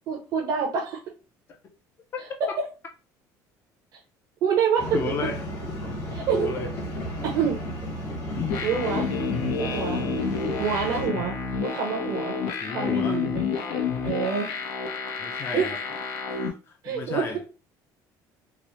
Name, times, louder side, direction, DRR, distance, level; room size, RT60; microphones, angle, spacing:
voice 1, 0.1-1.0 2.2-2.5 4.4-5.0 6.1-6.5 7.2-7.6 8.6-9.1 9.6-10.3 10.6-11.3 11.6-12.4 12.7-13.4 14.0-14.5 15.5-15.7 16.8-17.2, right 7 dB, 55° right, 0.7 m, -26 dB
sound 1, 4.8-11.1, equal, 50° left, 1.2 m, -33 dB
voice 2, 4.9-5.4 6.3-6.7 8.3-8.5 12.6-13.2 15.2-15.8 16.3-17.5, left 5 dB, 30° left, 0.5 m, -32 dB
sound 2, 8.5-16.5, left 5 dB, 85° left, 0.6 m, -29 dB
2.9 x 2.0 x 3.1 m
cardioid pair, 150°, 8 cm